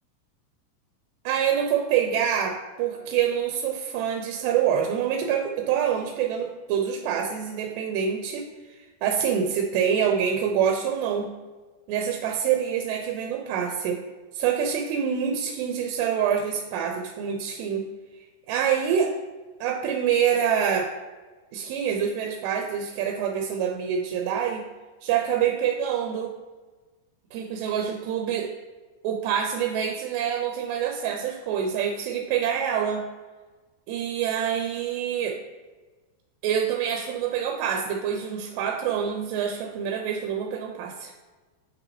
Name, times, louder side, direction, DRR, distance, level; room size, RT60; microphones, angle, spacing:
voice 1, 1.3-11.3 11.9-14.0 14.3-17.9 18.5-19.1 19.6-20.9 21.5-24.7 25.0-26.4 27.3-28.5 29.0-33.0 33.9-35.4 36.4-41.1, right 8 dB, 90° right, 3 dB, 2.8 m, -26 dB
9.3 x 4.9 x 3.2 m, 1.3 s
omnidirectional pair, 4.8 m